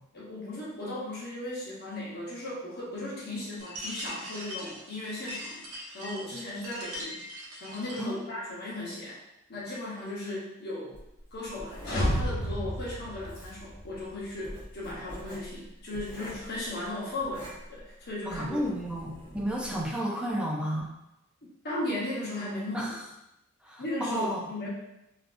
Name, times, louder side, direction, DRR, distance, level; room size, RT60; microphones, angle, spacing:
voice 1, 0.1-5.6 5.9-7.1 7.6-9.2 9.5-11.0 11.3-18.6 21.6-22.9 23.8-24.7, left 1 dB, 50° left, -6 dB, 1.0 m, -36 dB
sound 1, 3.6-8.2, equal, 65° right, 0.7 m, -41 dB
Writing, 10.9-19.9, equal, 20° right, 1.0 m, -45 dB
sound 2, 11.8-13.9, equal, 70° left, 1.3 m, -31 dB
voice 2, 18.3-20.9 22.7-23.0 23.6-24.4, equal, 5° right, -3 dB, 0.4 m, -32 dB
3.3 x 2.7 x 2.5 m, 0.86 s
head